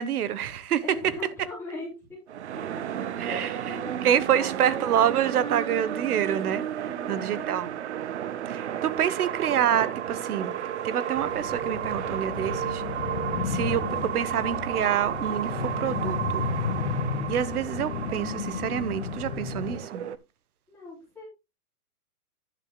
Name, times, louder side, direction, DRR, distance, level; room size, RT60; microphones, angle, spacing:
voice 1, 0.0-0.8 3.2-7.7 8.5-10.5 10.8-12.8 13.4-16.5 17.3-20.0, right 9 dB, 80° right, 1.1 m, -27 dB
voice 2, 0.8-1.9 2.7-2.8 3.3-4.9 6.8-7.5 20.7-21.2, left 2 dB, 5° left, 3.9 m, -40 dB
sound 1, 2.3-20.2, right 10 dB, 50° right, 0.6 m, -33 dB
sound 2, 11.2-19.8, left 6 dB, 45° left, 1.7 m, -33 dB
11.0 x 10.5 x 2.2 m
hypercardioid pair, 180°, 45 cm